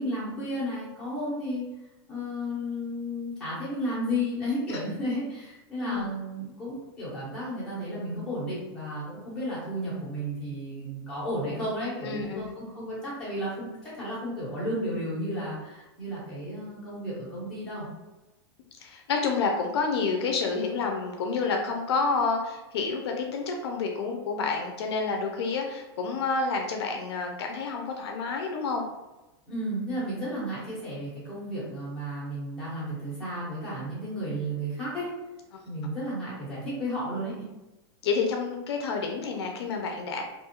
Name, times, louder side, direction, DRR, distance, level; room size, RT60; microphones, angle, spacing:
voice 1, 0.0-1.6 2.1-17.9 29.5-35.1 35.6-37.4, equal, 5° left, -11 dB, 1.1 m, -33 dB
voice 2, 12.0-12.5 18.8-28.8 38.0-40.2, left 4 dB, 75° left, 2 dB, 0.5 m, -29 dB
2.6 x 2.3 x 2.8 m, 1.0 s
supercardioid pair, 165°, 14 cm